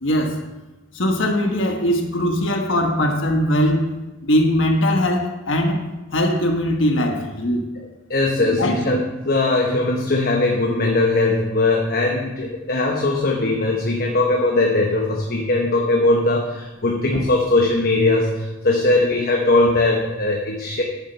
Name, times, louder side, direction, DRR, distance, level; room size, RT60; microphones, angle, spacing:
voice 1, 0.0-0.4 0.9-3.9 4.2-5.8 6.1-7.6 8.6-8.8, equal, 65° left, 3 dB, 1.3 m, -20 dB
voice 2, 7.7-20.8, left 2 dB, 50° left, 0 dB, 1.1 m, -20 dB
11.0 x 7.3 x 4.5 m, 1.1 s
head